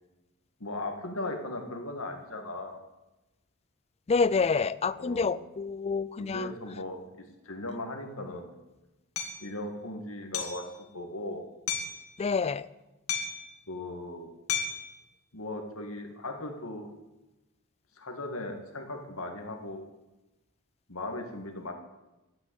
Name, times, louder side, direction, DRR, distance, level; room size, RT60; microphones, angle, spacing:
voice 1, 0.6-2.8 5.0-5.4 6.2-8.5 9.4-10.7 10.9-11.5 13.7-14.3 15.3-16.9 18.0-19.9 20.9-21.7, left 2 dB, 70° left, 4 dB, 2.0 m, -38 dB
voice 2, 4.1-6.5 12.2-12.7, left 4 dB, 30° left, 19 dB, 0.4 m, -27 dB
Hammer, 9.2-9.4 10.3-10.7 11.7-12.0 13.1-13.5 14.5-14.9, left 6 dB, 90° left, 1.9 m, -32 dB
11.5 x 8.8 x 8.3 m, 1.0 s
head